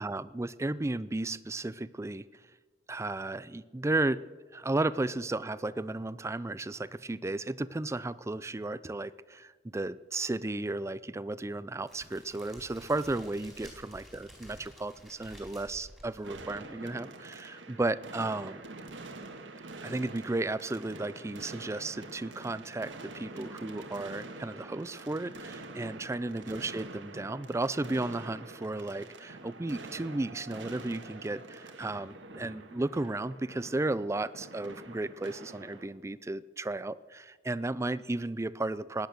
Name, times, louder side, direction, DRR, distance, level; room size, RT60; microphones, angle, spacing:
voice 1, 0.0-2.2 2.9-4.2 4.5-18.6 19.8-39.1, right 2 dB, 15° right, 17 dB, 0.4 m, -34 dB
Crackle, 11.8-16.9, equal, ahead, 4.2 m, -52 dB
sound 1, 16.2-35.9, right 2 dB, 85° right, 1.6 m, -46 dB
18.0 x 10.5 x 6.7 m, 1.4 s
head